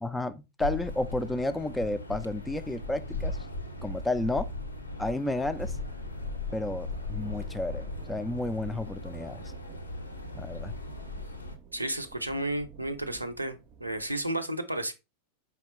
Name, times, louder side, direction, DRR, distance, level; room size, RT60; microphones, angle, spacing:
voice 1, 0.0-3.4 3.8-4.5 5.0-5.8 6.5-9.4 10.3-10.7, left 2 dB, 5° left, 0.3 m, -32 dB
sound 1, 0.6-11.6, left 2 dB, 80° left, 0.5 m, -37 dB
sound 2, 5.6-14.3, right 7 dB, 40° right, 0.6 m, -52 dB
voice 2, 11.7-14.9, right 1 dB, 85° right, 0.5 m, -32 dB
4.4 x 3.5 x 3.0 m
figure-of-eight pair, 90°, 0 cm